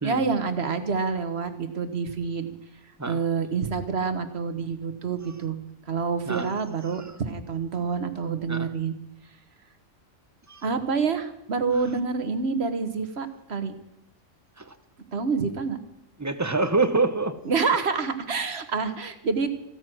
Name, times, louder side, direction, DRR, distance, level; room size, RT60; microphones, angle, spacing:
voice 1, 0.0-2.5 3.1-5.6 5.9-8.9 10.6-13.7 15.1-15.8 17.4-19.5, right 5 dB, 50° right, 9 dB, 1.6 m, -27 dB
voice 2, 16.2-17.3, right 3 dB, 15° right, 10 dB, 0.9 m, -26 dB
16.0 x 14.0 x 6.2 m, 0.85 s
omnidirectional pair, 1.4 m